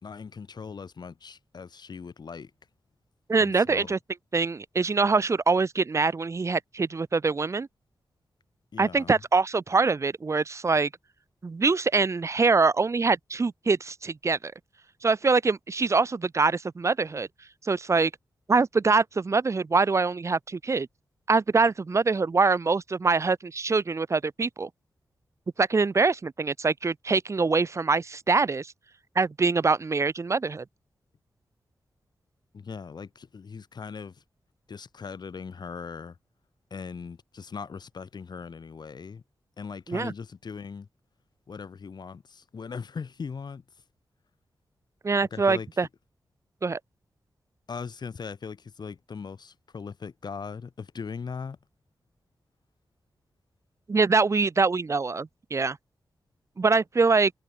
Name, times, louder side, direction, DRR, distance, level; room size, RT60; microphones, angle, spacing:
voice 1, 0.0-2.5 3.4-3.9 8.7-9.2 32.5-34.2 34.7-36.2 36.7-39.2 39.6-40.9 41.5-43.6 45.3-45.7 47.7-51.6, left 5 dB, 65° left, 2.4 m, -39 dB
voice 2, 3.3-4.0 4.3-7.7 8.8-10.9 11.4-14.5 15.0-17.3 17.6-18.1 18.5-20.9 21.3-24.7 25.6-28.7 29.2-30.6 39.9-40.1 45.0-45.9 46.6-46.8 53.9-55.8 56.6-57.3, right 4 dB, 40° right, 0.6 m, -24 dB
cardioid pair, 55°, 8 cm